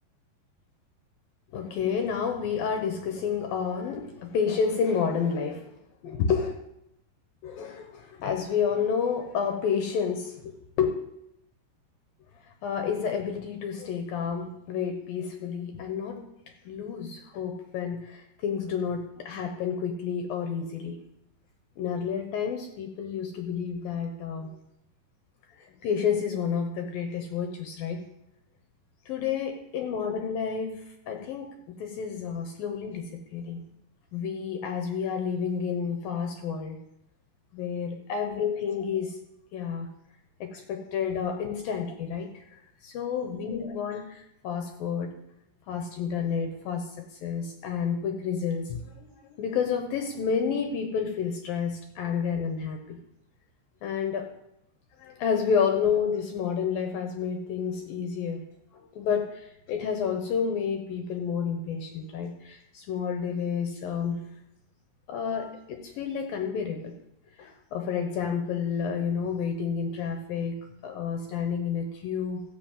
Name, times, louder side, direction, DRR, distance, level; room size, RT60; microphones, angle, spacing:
voice 1, 1.5-5.7 6.0-6.6 7.4-10.9 12.6-16.3 16.7-21.0 21.8-24.6 25.6-28.1 29.1-33.6 34.1-36.8 37.5-39.2 39.5-39.9 40.4-42.4 42.8-45.2 45.7-53.0 53.8-54.3 55.0-64.3 65.1-66.9 67.4-72.4, left 6 dB, 70° left, 5 dB, 2.5 m, -30 dB
15.0 x 7.7 x 7.4 m, 0.84 s
omnidirectional pair, 5.1 m